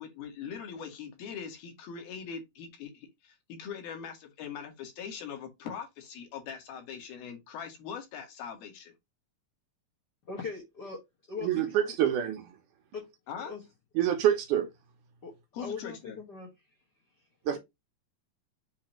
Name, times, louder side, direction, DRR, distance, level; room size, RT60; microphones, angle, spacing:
voice 1, 0.0-8.9 13.3-13.5 15.5-16.2, left 7 dB, 85° left, 3.5 m, -41 dB
voice 2, 10.2-11.0 11.3-12.0 12.9-13.1 13.4-13.6 15.2-16.5 17.2-17.3, left 5 dB, 50° left, 1.3 m, -40 dB
voice 3, 11.4-12.5 14.0-14.7 17.5-17.6, right 10 dB, 70° right, 2.2 m, -26 dB
7.2 x 3.0 x 4.3 m
omnidirectional pair, 4.1 m